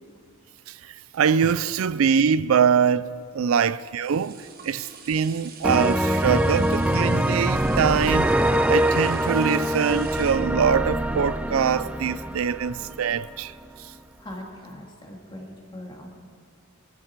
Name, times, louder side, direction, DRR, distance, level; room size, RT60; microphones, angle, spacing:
voice 1, 0.7-8.3 8.7-13.5 13.8-13.9, right 7 dB, 90° right, 0.4 m, -23 dB
sound 1, 3.3-12.7 13.2-13.3, right 6 dB, 45° right, 1.4 m, -46 dB
sound 2, 5.6-13.3, right 1 dB, 5° right, 0.4 m, -24 dB
voice 2, 14.2-16.1, left 1 dB, 25° left, 2.5 m, -40 dB
24.5 x 11.5 x 4.6 m
head